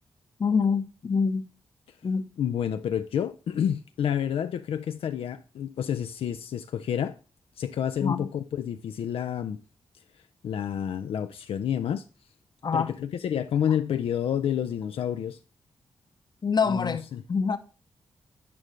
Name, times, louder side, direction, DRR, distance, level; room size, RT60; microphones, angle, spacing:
voice 1, 0.4-1.5 2.0-2.3 8.0-8.3 12.6-12.9 16.4-17.6, left 5 dB, 50° left, 0.7 m, -26 dB
voice 2, 2.4-7.2 7.6-9.6 10.4-12.0 12.7-15.4 16.7-17.2, left 9 dB, 85° left, 0.4 m, -29 dB
8.7 x 5.0 x 3.1 m
cardioid pair, 75°, 9 cm